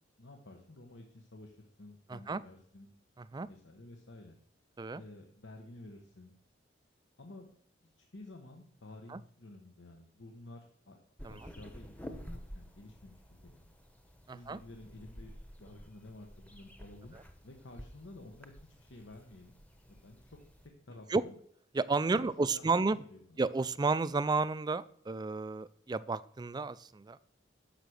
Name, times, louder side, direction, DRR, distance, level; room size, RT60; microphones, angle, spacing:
voice 1, 0.2-2.9 3.5-4.4 4.9-6.3 7.2-7.5 7.8-11.0 11.3-13.8 14.3-15.3 15.6-17.2 17.4-19.6 19.9-20.4 20.8-21.4 22.1-23.4, left 2 dB, 80° left, 3 dB, 1.2 m, -52 dB
sound 1, 11.2-20.7, equal, 10° left, 0.9 m, -51 dB
voice 2, 14.3-14.6 21.1-21.2 21.7-23.0 23.4-27.2, right 3 dB, 20° right, 17 dB, 0.3 m, -32 dB
10.5 x 6.8 x 6.4 m, 0.64 s
head